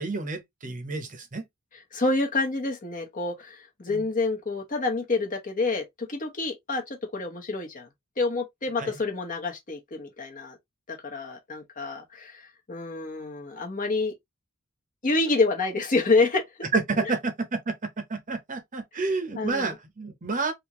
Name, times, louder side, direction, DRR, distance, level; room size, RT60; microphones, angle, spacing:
voice 1, 0.0-1.5 3.9-4.0 8.8-9.0 16.7-20.5, right 3 dB, 40° right, 0.8 m, -29 dB
voice 2, 1.9-5.8 6.1-7.9 8.2-10.6 10.9-14.1 15.0-16.4 17.0-17.1 19.4-19.7, left 3 dB, 40° left, 1.0 m, -28 dB
3.6 x 2.6 x 2.9 m
head